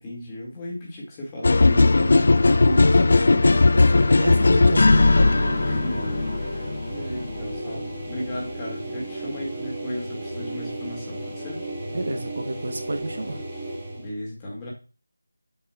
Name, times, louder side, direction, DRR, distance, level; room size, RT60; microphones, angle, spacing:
voice 1, 0.0-2.4 2.7-3.6 5.6-11.6 13.9-14.7, equal, 15° left, -4 dB, 1.9 m, -35 dB
sound 1, 1.4-7.4, left 3 dB, 45° left, 0.4 m, -18 dB
sound 2, 3.7-14.1, right 1 dB, 5° right, 2.0 m, -34 dB
voice 2, 4.2-5.2 11.9-13.4, right 2 dB, 50° right, 7 dB, 0.9 m, -30 dB
7.5 x 6.4 x 2.3 m, 0.33 s
figure-of-eight pair, 165°, 0 cm